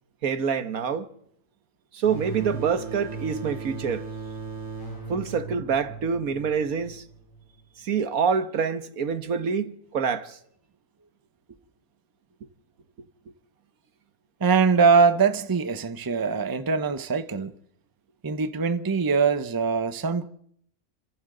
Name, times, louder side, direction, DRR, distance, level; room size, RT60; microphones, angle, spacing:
voice 1, 0.2-1.1 1.9-4.1 5.1-7.0 7.8-10.4, right 6 dB, 75° right, 1.6 m, -26 dB
sound 1, 2.0-7.5, right 4 dB, 35° left, 5.8 m, -37 dB
voice 2, 14.4-17.5 18.2-20.3, right 5 dB, 20° right, 0.7 m, -22 dB
28.5 x 26.0 x 3.9 m
omnidirectional pair, 1.5 m